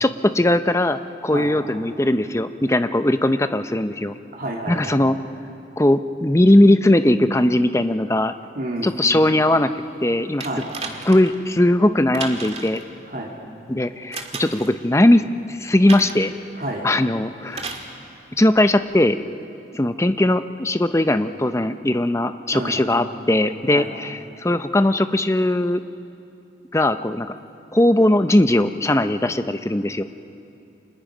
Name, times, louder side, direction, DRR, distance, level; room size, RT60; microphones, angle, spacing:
voice 1, 0.0-4.1 4.7-5.2 5.8-8.3 8.8-9.7 10.0-10.5 11.0-12.8 13.7-16.3 16.8-17.7 18.4-19.2 19.7-25.8 26.7-27.3 27.7-30.0, left 1 dB, 15° left, 10 dB, 0.6 m, -19 dB
voice 2, 4.3-5.0 8.5-9.0 10.4-10.7 13.1-13.3 16.6-16.8 22.5-22.9 23.7-23.9, right 1 dB, 50° right, -2 dB, 2.9 m, -30 dB
sound 1, 10.4-11.4 12.1-12.8 14.1-14.7 15.9-16.3 17.5-17.9 18.9-19.0, right 4 dB, 35° right, 1.8 m, -33 dB
29.5 x 26.0 x 5.1 m, 2.6 s
head